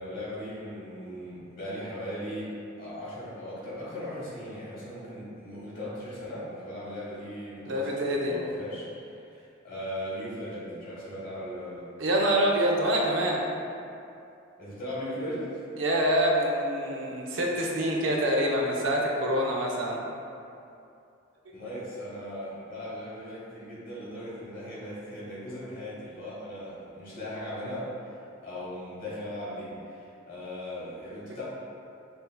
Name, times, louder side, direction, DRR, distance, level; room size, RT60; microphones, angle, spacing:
voice 1, 0.0-11.9 14.6-15.6 21.5-28.1 28.4-31.4, equal, 45° left, -8 dB, 1.3 m, -38 dB
voice 2, 7.7-8.3 12.0-13.4 15.8-20.1, right 1 dB, 65° right, -1 dB, 0.5 m, -26 dB
6.4 x 2.6 x 2.2 m, 2.6 s
head